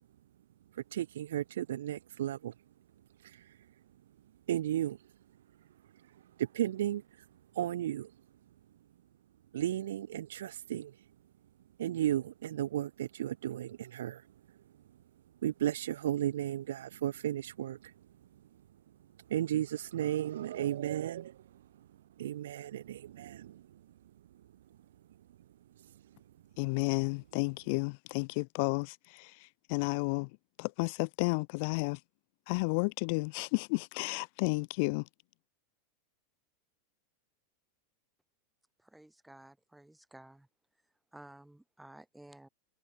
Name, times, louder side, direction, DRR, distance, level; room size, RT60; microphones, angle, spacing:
voice 1, 0.7-2.5 3.2-3.5 4.5-5.0 6.4-7.0 7.5-8.1 9.5-11.0 11.8-14.2 15.4-17.9 19.3-21.4 21.8-21.9 22.2-23.8, right 12 dB, 80° right, 1.6 m, -34 dB
voice 2, 26.6-30.3 30.6-32.0 32.5-35.0, left 31 dB, 60° left, 0.9 m, -32 dB
voice 3, 38.9-40.5 41.1-42.5, right 1 dB, 5° right, 4.5 m, -54 dB
hypercardioid pair, 115°, 0 cm